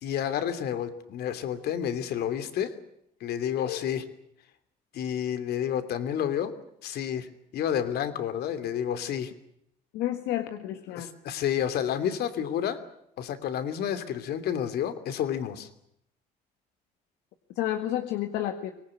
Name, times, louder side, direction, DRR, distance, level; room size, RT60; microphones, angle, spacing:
voice 1, 0.0-2.7 3.2-4.0 4.9-6.5 6.8-7.3 7.5-9.3 10.9-12.8 13.2-15.7, left 9 dB, 70° left, 11 dB, 3.0 m, -30 dB
voice 2, 9.9-11.1 17.6-18.7, left 12 dB, 90° left, 6 dB, 1.9 m, -31 dB
24.0 x 19.0 x 10.0 m, 0.75 s
cardioid pair, 110°, 17 cm